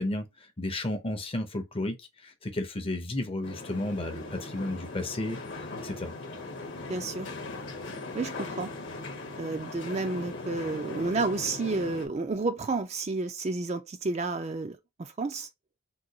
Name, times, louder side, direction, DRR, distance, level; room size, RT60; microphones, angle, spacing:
voice 1, 0.0-5.4 5.8-6.1, left 1 dB, 25° left, 0.6 m, -33 dB
sound 1, 3.4-12.1, left 2 dB, 55° left, 1.0 m, -39 dB
voice 2, 6.9-7.3 8.1-8.7 9.4-15.5, right 3 dB, 30° right, 0.4 m, -31 dB
3.8 x 2.3 x 2.7 m
head